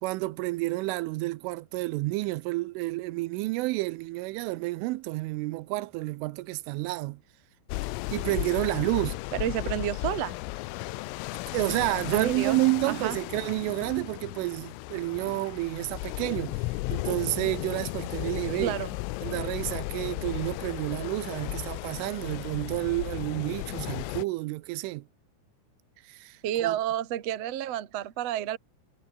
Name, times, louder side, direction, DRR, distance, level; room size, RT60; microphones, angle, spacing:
voice 1, 0.0-7.2 8.1-9.2 11.5-16.6 16.9-18.8 19.2-25.1 26.0-26.8, right 20 dB, 85° right, 3.2 m, -30 dB
sound 1, 7.7-24.3, left 20 dB, 85° left, 3.4 m, -35 dB
voice 2, 9.4-10.4 12.1-12.6 12.9-13.1 18.6-18.9 26.4-28.6, right 11 dB, 60° right, 1.6 m, -30 dB
omnidirectional pair, 5.7 m